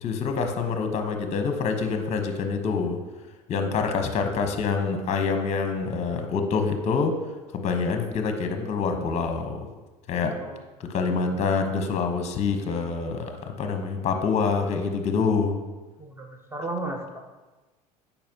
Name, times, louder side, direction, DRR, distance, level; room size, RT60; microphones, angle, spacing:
voice 1, 0.0-3.0 3.5-7.1 7.5-9.7 10.1-10.3 10.8-15.6, left 5 dB, 35° left, 6 dB, 0.9 m, -26 dB
voice 2, 16.0-17.2, right 2 dB, 10° right, 3 dB, 1.0 m, -35 dB
8.6 x 5.5 x 2.9 m, 1.2 s
hypercardioid pair, 75°, 20 cm